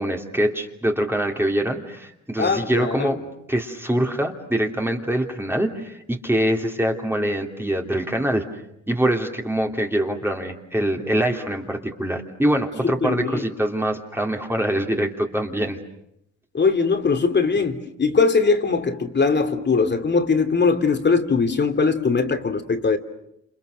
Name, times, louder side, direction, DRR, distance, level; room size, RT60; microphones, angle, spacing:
voice 1, 0.0-3.2 3.5-8.4 8.9-15.8, right 1 dB, 10° right, 2 dB, 3.0 m, -24 dB
voice 2, 2.4-3.1 12.8-13.4 16.5-23.0, left 4 dB, 35° left, 8 dB, 2.7 m, -21 dB
29.5 x 28.5 x 6.6 m, 0.78 s
cardioid pair, 90°, 30 cm